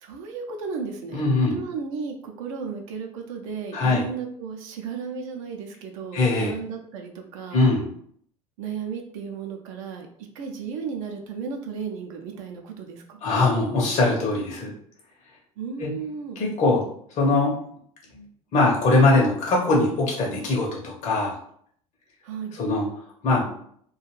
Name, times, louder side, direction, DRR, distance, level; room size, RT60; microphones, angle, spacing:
voice 1, 0.0-7.7 8.6-10.1 10.3-13.2 15.6-16.4 22.2-22.6, right 6 dB, 65° right, 3 dB, 0.5 m, -34 dB
voice 2, 1.1-1.6 3.7-4.0 6.1-6.5 7.5-7.9 13.2-14.7 15.8-15.9 16.4-16.8 17.2-17.5 18.1-18.2 18.5-21.3 22.5-22.9 23.2-23.5, left 2 dB, 40° left, -2 dB, 0.7 m, -21 dB
2.4 x 2.3 x 3.1 m, 0.64 s
figure-of-eight pair, 65°, 18 cm